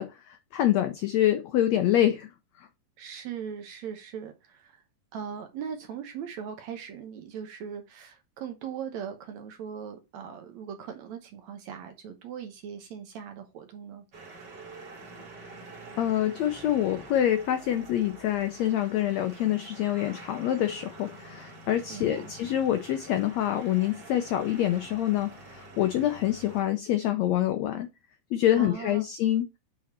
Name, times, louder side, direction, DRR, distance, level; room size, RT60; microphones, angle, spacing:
voice 1, 0.0-2.3 2.6-2.7 16.0-27.9 28.3-29.5, left 12 dB, 80° left, 1.5 m, -26 dB
voice 2, 3.0-4.7 5.1-14.0 21.9-22.3 28.6-29.1, right 7 dB, 65° right, 2.0 m, -39 dB
sound 1, 14.1-26.6, right 2 dB, 40° right, 1.7 m, -47 dB
7.3 x 4.2 x 4.2 m
omnidirectional pair, 3.9 m